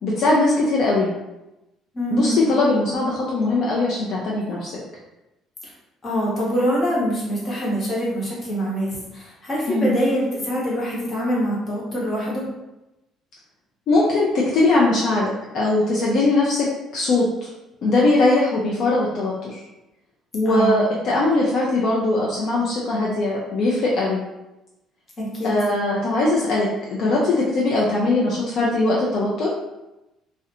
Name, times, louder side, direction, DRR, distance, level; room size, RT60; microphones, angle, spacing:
voice 1, 0.0-1.1 2.1-4.8 9.7-10.0 13.9-15.3 15.5-16.7 16.9-17.5 17.8-19.6 20.3-24.2 25.4-29.5, left 2 dB, 55° left, -4 dB, 0.4 m, -20 dB
voice 2, 1.9-2.4 6.0-12.5 20.5-20.7 25.2-25.5, equal, 30° left, -5 dB, 0.9 m, -24 dB
2.4 x 2.1 x 2.8 m, 0.96 s
cardioid pair, 135°, 0 cm